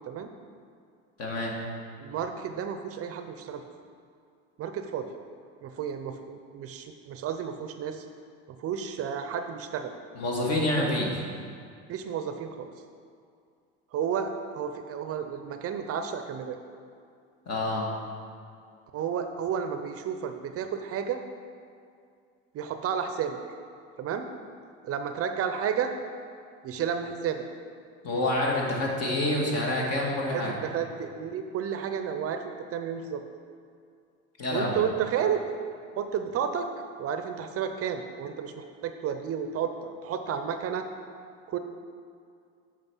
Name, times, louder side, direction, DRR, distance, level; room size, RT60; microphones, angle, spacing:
voice 1, 1.2-1.5 10.2-11.2 17.5-17.9 28.0-30.6 34.4-34.8, left 1 dB, 50° left, -2 dB, 2.1 m, -27 dB
voice 2, 2.0-3.7 4.6-5.1 5.6-8.0 8.5-9.9 11.9-12.7 13.9-16.6 18.9-21.2 22.5-23.4 24.0-24.3 24.8-25.9 26.6-27.4 30.2-32.4 32.7-33.2 34.5-35.4 36.0-36.7 37.0-40.9 41.5-41.6, right 8 dB, 45° right, 7 dB, 0.6 m, -32 dB
8.1 x 5.2 x 5.5 m, 2.3 s
supercardioid pair, 100°, 33 cm